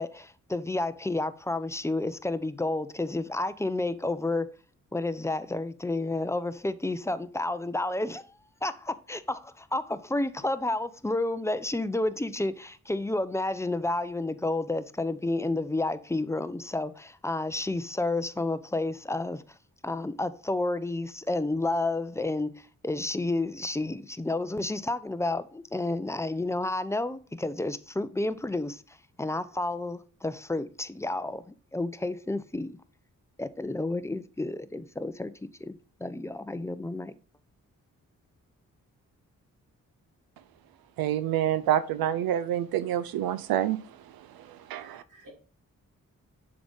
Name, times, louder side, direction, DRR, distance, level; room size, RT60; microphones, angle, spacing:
voice 1, 0.0-4.5 4.9-8.3 8.6-19.4 19.8-22.5 22.8-31.4 31.7-32.8 33.4-37.2, left 2 dB, 10° left, 0.5 m, -30 dB
voice 2, 41.0-43.8 44.7-45.0, right 11 dB, 90° right, 0.5 m, -27 dB
voice 3, 44.5-45.3, equal, 60° right, 2.8 m, -55 dB
6.8 x 3.9 x 3.8 m
supercardioid pair, 45°, 35 cm